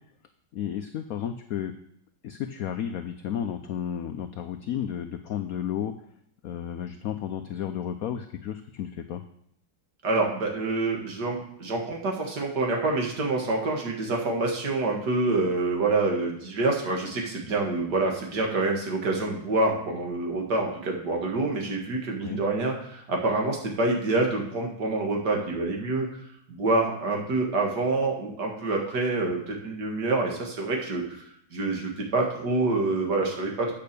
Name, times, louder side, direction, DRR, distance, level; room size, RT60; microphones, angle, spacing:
voice 1, 0.5-1.7 2.2-5.9 6.4-9.2 22.2-22.4, left 9 dB, 85° left, 8 dB, 0.7 m, -32 dB
voice 2, 10.0-26.2 26.5-33.7, right 2 dB, 55° right, 0 dB, 2.2 m, -27 dB
8.6 x 5.7 x 6.7 m, 0.71 s
omnidirectional pair, 2.1 m